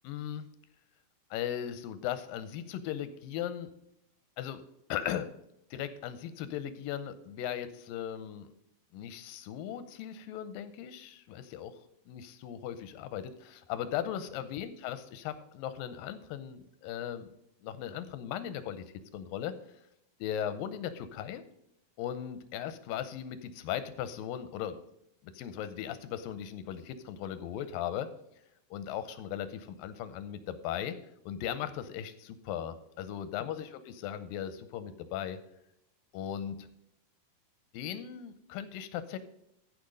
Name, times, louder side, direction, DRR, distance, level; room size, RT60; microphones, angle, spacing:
voice 1, 0.0-0.5 1.3-3.7 4.4-4.6 4.9-5.3 5.7-8.5 8.9-11.7 12.1-17.3 17.6-18.8 19.1-19.6 20.2-21.4 22.0-24.8 25.3-28.1 28.7-31.0 31.3-35.4 36.1-36.6 37.7-39.2, left 10 dB, 85° left, 12 dB, 2.4 m, -38 dB
14.5 x 5.1 x 5.1 m, 0.79 s
omnidirectional pair, 4.1 m